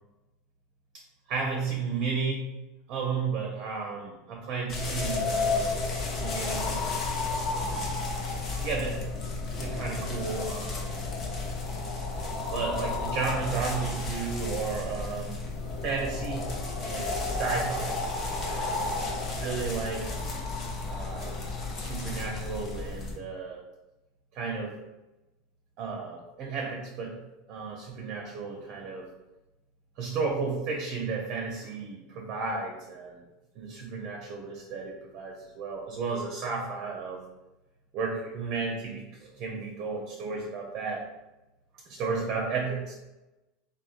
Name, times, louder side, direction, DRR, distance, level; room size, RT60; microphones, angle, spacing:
voice 1, 1.3-2.5 2.9-5.7 6.2-6.8 7.5-8.0 8.6-9.1 9.6-11.0 12.5-15.4 15.8-16.5 16.8-18.0 18.3-18.7 19.4-20.2 20.9-21.4 21.7-23.6 24.3-24.7 25.8-27.2 27.5-29.1 30.0-33.2 33.6-37.2 37.9-41.0 41.9-42.9, right 4 dB, 50° right, 0 dB, 0.5 m, -33 dB
sound 1, 4.7-23.2, left 3 dB, 40° left, 0.6 m, -32 dB
3.0 x 2.0 x 2.4 m, 1.0 s
hypercardioid pair, 90°, 0 cm